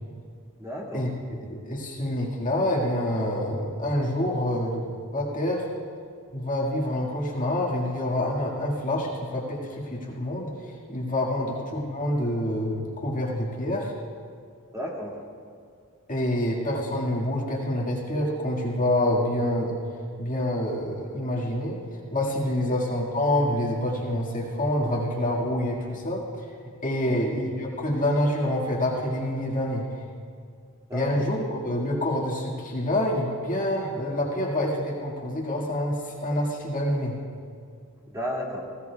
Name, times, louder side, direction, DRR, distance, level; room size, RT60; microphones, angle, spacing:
voice 1, 0.6-1.1 11.4-11.5 14.7-15.2 27.1-27.2 30.9-31.2 38.1-38.6, equal, 15° right, -5 dB, 2.4 m, -33 dB
voice 2, 1.4-5.7 6.3-13.9 16.1-19.8 20.2-21.8 22.1-26.5 26.8-30.0 30.9-37.1, left 1 dB, 40° left, -4 dB, 1.9 m, -27 dB
19.0 x 17.0 x 2.4 m, 2.2 s
head